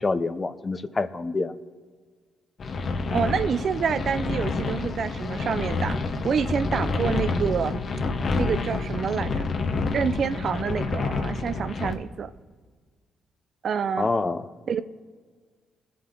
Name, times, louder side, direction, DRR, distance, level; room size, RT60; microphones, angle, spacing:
voice 1, 0.0-1.5 14.0-14.5, left 3 dB, 30° left, 11 dB, 0.6 m, -26 dB
sound 1, 2.6-11.9, left 3 dB, 50° left, 1.2 m, -28 dB
voice 2, 3.1-6.0 6.2-7.8 8.4-9.5 9.9-12.3 13.6-14.1 14.7-14.8, right 7 dB, 55° right, 13 dB, 0.5 m, -27 dB
20.5 x 7.7 x 3.8 m, 1.5 s
cardioid pair, 90°, 0 cm